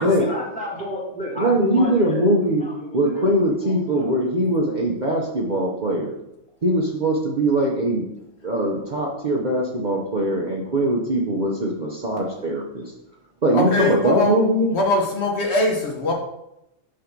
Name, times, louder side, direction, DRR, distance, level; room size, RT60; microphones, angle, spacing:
voice 1, 0.0-4.1, left 1 dB, 5° left, -6 dB, 1.8 m, -32 dB
voice 2, 1.4-2.6 2.9-6.1 6.6-8.0 8.4-12.9 13.4-14.7, right 1 dB, 40° right, -2 dB, 0.9 m, -21 dB
voice 3, 13.5-14.4 14.7-16.1, left 2 dB, 60° left, 0 dB, 1.3 m, -22 dB
5.1 x 3.9 x 5.9 m, 0.84 s
omnidirectional pair, 1.3 m